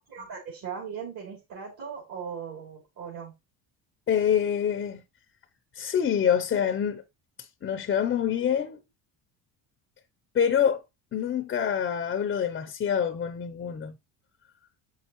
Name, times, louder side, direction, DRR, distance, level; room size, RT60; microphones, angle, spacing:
voice 1, 0.1-3.3, right 7 dB, 55° right, 3.1 m, -38 dB
voice 2, 4.1-5.0 5.7-7.0 7.6-8.8 10.3-10.8 11.1-13.9, left 8 dB, 30° left, 0.6 m, -26 dB
7.5 x 5.6 x 3.0 m
cardioid pair, 140°, 39 cm